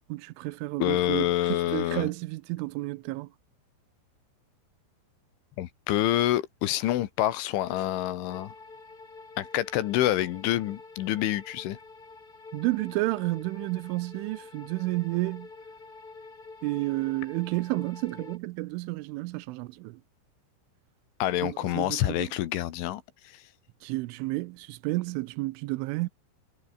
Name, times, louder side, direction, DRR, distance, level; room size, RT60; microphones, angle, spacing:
voice 1, 0.1-3.3 12.5-15.5 16.6-20.0 21.4-22.3 23.8-26.1, right 21 dB, 85° right, 3.2 m, -31 dB
voice 2, 0.8-2.1 5.6-8.5 9.4-11.8 21.2-23.4, left 14 dB, 80° left, 3.9 m, -27 dB
sound 1, 8.3-18.4, left 3 dB, 20° left, 3.3 m, -47 dB
omnidirectional pair, 5.6 m